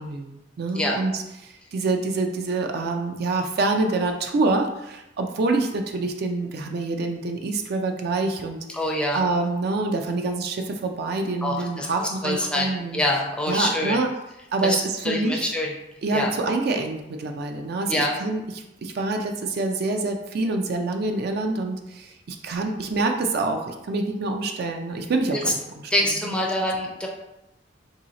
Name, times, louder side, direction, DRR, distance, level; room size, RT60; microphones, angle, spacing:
voice 1, 0.0-8.6 9.1-13.0 13.5-14.1 14.5-15.5 16.0-18.4 18.8-25.6 26.2-26.4, right 3 dB, 55° right, 4 dB, 0.4 m, -26 dB
voice 2, 8.7-9.2 11.4-14.0 14.6-14.8 15.0-15.7 16.1-16.3 17.9-18.1 25.3-25.4 25.9-27.1, left 1 dB, 5° left, -2 dB, 0.4 m, -25 dB
2.7 x 2.7 x 3.9 m, 0.91 s
head